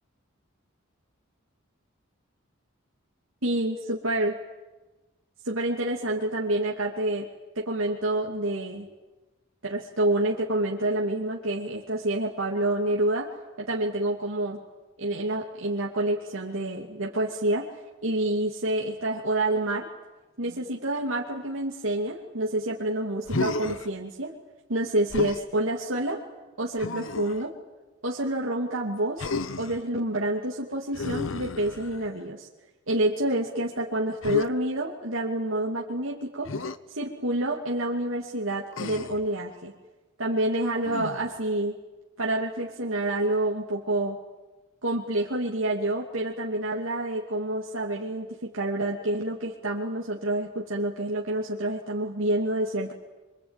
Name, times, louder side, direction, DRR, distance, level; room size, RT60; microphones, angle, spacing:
voice 1, 3.4-4.4 5.4-7.3 7.6-8.9 9.6-13.3 13.6-14.6 15.0-17.7 18.0-19.9 20.4-24.3 24.7-26.2 26.6-27.5 28.0-29.3 29.6-32.5 32.9-36.5 36.9-39.7 40.2-41.7 42.2-44.2 44.8-52.9, right 1 dB, 80° right, -2 dB, 2.7 m, -28 dB
Human voice, 23.2-23.9 25.1-25.5 26.8-27.4 29.2-29.8 30.9-32.2 34.2-34.5 36.4-36.8 38.7-39.3 40.8-41.4, left 3 dB, 80° left, 1.1 m, -32 dB
25.5 x 25.0 x 9.1 m, 1.1 s
head